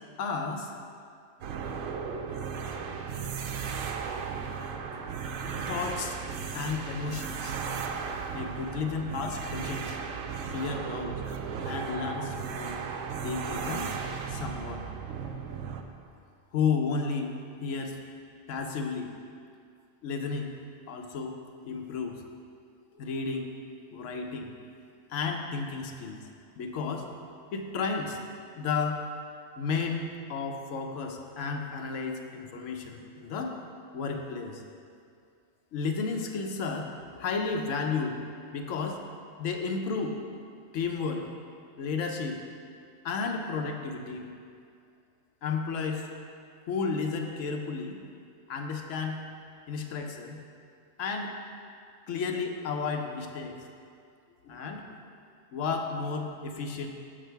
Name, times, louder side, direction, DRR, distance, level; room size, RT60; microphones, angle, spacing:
voice 1, 0.2-0.8 5.4-7.6 8.3-10.0 10.5-11.2 11.6-12.8 13.2-13.9 14.3-14.9 16.5-17.3 17.6-18.0 18.5-19.1 20.0-20.5 20.9-21.4 21.6-22.2 22.9-24.5 25.1-26.3 26.6-28.2 28.6-29.0 29.6-33.6 33.9-34.6 35.7-38.2 38.5-39.0 39.4-40.2 40.7-41.3 41.8-42.4 43.0-44.3 45.4-46.1 46.7-48.0 48.5-49.2 49.7-50.4 51.0-51.4 52.1-53.6 54.4-55.0 55.5-56.9, left 4 dB, 75° left, 3 dB, 1.1 m, -33 dB
sound 1, 1.4-15.8, right 6 dB, 85° right, 1.0 m, -35 dB
6.6 x 6.3 x 4.6 m, 2.3 s
omnidirectional pair, 1.3 m